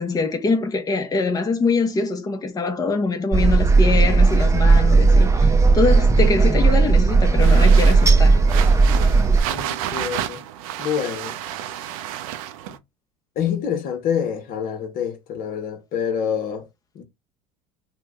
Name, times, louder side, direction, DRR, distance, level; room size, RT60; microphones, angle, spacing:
voice 1, 0.0-8.4, left 3 dB, 20° left, 0.7 m, -23 dB
sound 1, 3.3-9.4, right 3 dB, 15° right, 0.6 m, -15 dB
sound 2, 7.4-12.8, right 11 dB, 70° right, 0.4 m, -31 dB
voice 2, 9.5-10.4 10.8-11.3 13.4-16.7 16.9-17.0, left 8 dB, 50° left, 0.9 m, -26 dB
2.9 x 2.1 x 3.5 m
hypercardioid pair, 75°, 18 cm